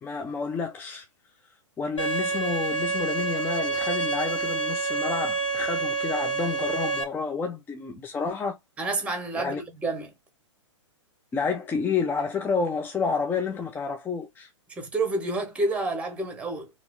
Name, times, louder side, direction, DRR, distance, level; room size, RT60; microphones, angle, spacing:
voice 1, 0.0-1.1 1.8-8.6 9.4-9.6 11.3-14.5, left 5 dB, 10° left, 0.6 m, -29 dB
Bowed string instrument, 2.0-7.0, right 3 dB, 70° left, 1.8 m, -28 dB
voice 2, 8.8-10.1 14.7-16.7, right 2 dB, 10° right, 1.2 m, -29 dB
3.0 x 2.9 x 3.7 m
figure-of-eight pair, 115°, 16 cm